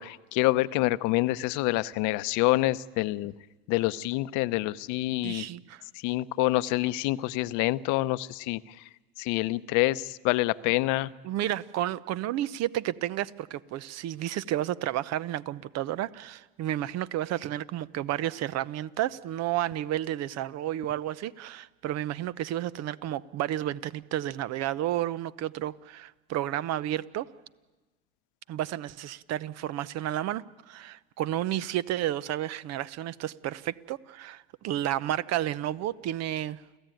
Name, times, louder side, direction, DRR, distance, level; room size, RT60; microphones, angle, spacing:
voice 1, 0.0-3.3 3.7-5.5 5.9-8.6 9.2-11.1, left 19 dB, 65° left, 15 dB, 0.8 m, -27 dB
voice 2, 5.2-5.8 11.2-27.3 28.5-36.6, right 13 dB, 55° right, 17 dB, 0.9 m, -31 dB
29.0 x 14.5 x 9.2 m, 1.2 s
hypercardioid pair, 85°, 32 cm